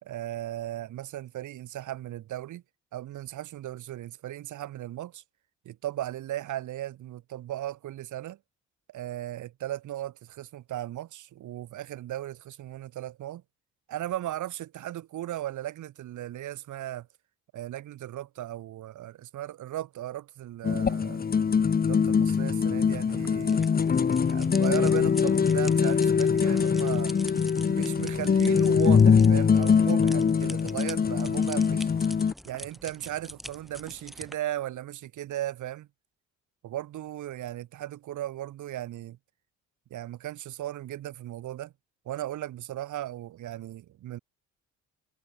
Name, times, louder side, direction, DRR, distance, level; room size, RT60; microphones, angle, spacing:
voice 1, 0.0-2.6 2.9-5.2 5.6-8.4 8.9-13.4 13.9-17.1 17.5-21.2 21.8-23.7 24.3-27.1 27.7-31.9 32.4-35.9 36.6-39.2 39.9-41.7 42.0-44.2, right 13 dB, 75° right, 2.8 m, -36 dB
sound 1, 20.6-32.3, left 6 dB, 30° left, 0.9 m, -23 dB
sound 2, 23.1-34.4, equal, ahead, 3.3 m, -46 dB
cardioid pair, 90°, 30 cm